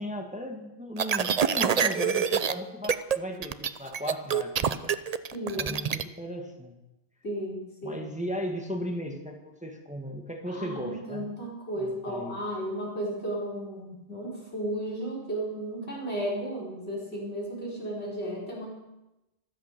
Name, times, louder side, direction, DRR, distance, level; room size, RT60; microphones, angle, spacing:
voice 1, 0.0-4.9 5.5-6.7 7.8-11.3 11.8-12.4, equal, 5° right, 3 dB, 1.6 m, -36 dB
sound 1, 1.0-2.5 2.8-3.2 3.4-6.0, right 7 dB, 45° right, 0.6 m, -26 dB
voice 2, 5.3-5.8 7.2-8.0 10.5-18.7, right 1 dB, 75° left, -4 dB, 5.1 m, -34 dB
14.0 x 13.0 x 6.8 m, 0.97 s
omnidirectional pair, 1.1 m